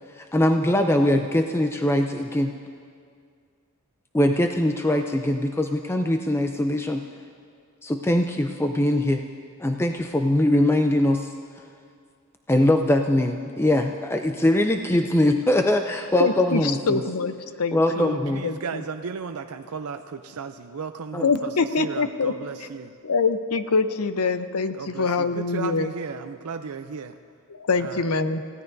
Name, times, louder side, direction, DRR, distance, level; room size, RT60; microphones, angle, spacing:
voice 1, 0.2-2.5 4.1-7.1 7.8-9.2 9.6-11.3 12.5-17.0 17.7-18.4 21.1-21.3, left 1 dB, 10° left, 4 dB, 0.5 m, -22 dB
voice 2, 16.2-18.8 21.2-22.3 23.0-25.9 27.6-28.4, left 4 dB, 80° left, 10 dB, 0.7 m, -25 dB
voice 3, 17.9-22.9 24.8-27.1 27.7-28.1, right 5 dB, 75° right, 7 dB, 0.5 m, -35 dB
29.5 x 16.5 x 2.7 m, 2.2 s
head